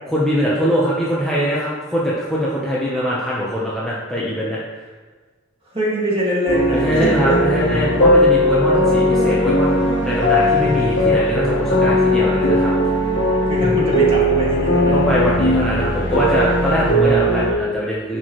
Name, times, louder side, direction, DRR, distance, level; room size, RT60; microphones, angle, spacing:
voice 1, 0.0-4.6 6.7-12.7 14.9-18.2, equal, 5° left, -8 dB, 0.9 m, -22 dB
voice 2, 5.7-7.4 13.4-15.3, equal, 30° right, -6 dB, 2.0 m, -23 dB
sound 1, 6.5-17.5, equal, 70° left, 1.4 m, -18 dB
10.5 x 4.6 x 3.1 m, 1.3 s
head